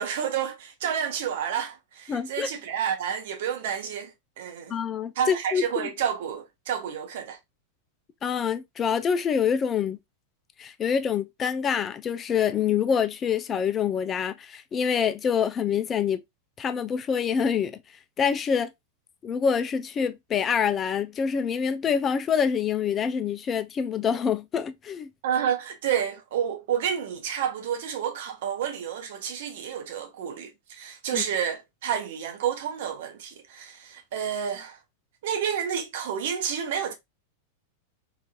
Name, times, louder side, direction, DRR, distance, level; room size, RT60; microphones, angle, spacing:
voice 1, 0.0-4.8 5.2-7.4 25.2-34.8 35.2-36.9, right 8 dB, 60° right, 0.8 m, -30 dB
voice 2, 2.1-2.5 4.7-5.9 8.2-10.0 10.6-16.2 16.6-17.8 18.2-18.7 19.2-25.1 31.1-31.2, left 7 dB, 30° left, 0.4 m, -26 dB
3.8 x 2.5 x 2.2 m
figure-of-eight pair, 95°, 0 cm